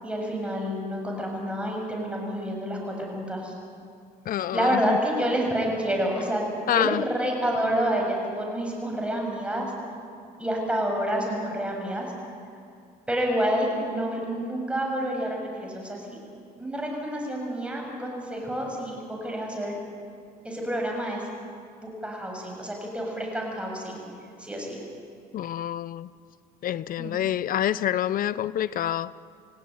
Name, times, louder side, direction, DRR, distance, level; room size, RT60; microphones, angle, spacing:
voice 1, 0.0-3.5 4.5-6.4 6.7-9.7 10.4-12.1 13.1-16.2 16.6-19.7 20.4-21.2 21.8-24.0 24.4-24.8 27.0-27.2, equal, 5° right, 7.8 m, -28 dB
voice 2, 4.3-5.0 6.7-7.0 25.3-26.1 26.6-29.1, left 11 dB, 55° left, 0.7 m, -27 dB
29.0 x 17.0 x 9.7 m
cardioid pair, 110°, 17 cm